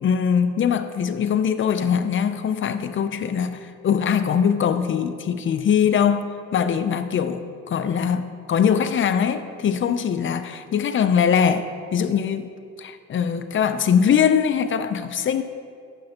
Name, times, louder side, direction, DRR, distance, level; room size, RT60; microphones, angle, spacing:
voice 1, 0.0-6.2 6.5-12.5 12.8-15.4, left 7 dB, 40° left, 10 dB, 0.5 m, -22 dB
11.5 x 6.3 x 2.9 m, 2.2 s
cardioid pair, 90°, 30 cm